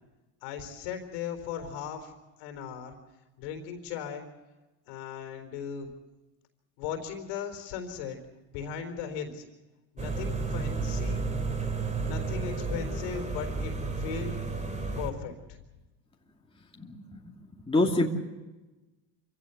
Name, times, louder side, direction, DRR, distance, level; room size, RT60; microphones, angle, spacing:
voice 1, 0.4-2.1 2.4-3.0 3.4-4.3 4.9-5.9 6.8-8.2 8.5-9.4 9.9-11.3 12.0-13.7 14.0-14.4 14.9-15.3, left 7 dB, 85° left, 6 dB, 4.1 m, -37 dB
sound 1, 10.0-15.1, right 4 dB, 15° right, 2.4 m, -32 dB
voice 2, 16.8-17.3 17.7-18.1, left 2 dB, 10° left, -1 dB, 2.6 m, -26 dB
26.5 x 16.0 x 8.1 m, 1.1 s
supercardioid pair, 110°, 46 cm